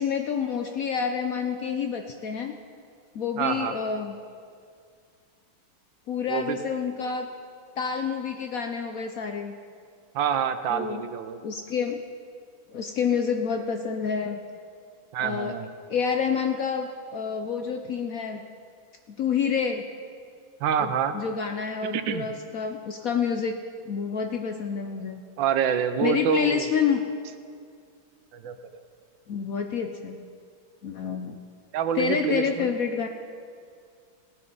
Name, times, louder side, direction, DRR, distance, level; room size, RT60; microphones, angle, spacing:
voice 1, 0.0-2.5 3.1-4.2 6.1-7.3 7.8-9.5 10.7-11.0 11.4-12.0 12.7-14.4 15.2-15.6 15.9-18.4 19.2-19.9 20.8-23.6 23.8-25.2 26.0-27.0 29.3-30.2 30.8-31.4 31.9-33.1, left 6 dB, 65° left, 5 dB, 0.8 m, -28 dB
voice 2, 3.4-3.7 6.3-6.6 10.1-11.4 15.1-15.7 20.6-21.2 21.9-22.2 25.4-26.7 28.3-28.8 31.7-32.7, right 8 dB, 75° right, 10 dB, 1.4 m, -26 dB
18.5 x 8.6 x 5.4 m, 2.2 s
omnidirectional pair, 2.1 m